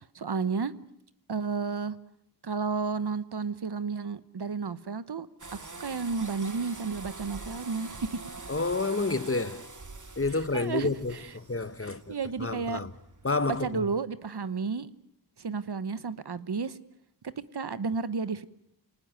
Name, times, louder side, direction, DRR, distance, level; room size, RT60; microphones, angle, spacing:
voice 1, 0.1-0.7 1.3-2.0 2.4-5.3 5.8-8.2 10.5-11.3 11.8-12.8 13.5-14.9 15.4-16.8 17.2-18.4, right 5 dB, 70° right, 1.1 m, -32 dB
sound 1, 5.4-13.7, right 3 dB, 45° right, 2.2 m, -45 dB
voice 2, 8.5-9.6 10.2-12.1 12.4-12.9 13.2-13.9, left 3 dB, 35° left, 1.1 m, -29 dB
29.0 x 19.0 x 9.1 m
wide cardioid pair, 75°, 41 cm